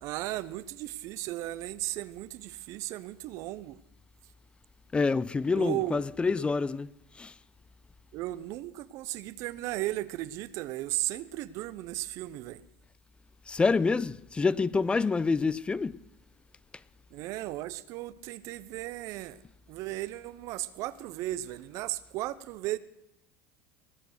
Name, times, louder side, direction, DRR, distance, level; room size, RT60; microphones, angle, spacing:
voice 1, 0.0-3.8 5.5-6.0 8.1-12.6 17.1-19.4 19.7-22.8, right 16 dB, 60° right, 0.6 m, -35 dB
voice 2, 4.9-6.9 7.2-7.3 13.5-16.0, left 4 dB, 15° left, 0.4 m, -27 dB
20.0 x 6.8 x 6.4 m
hypercardioid pair, 90°, 6 cm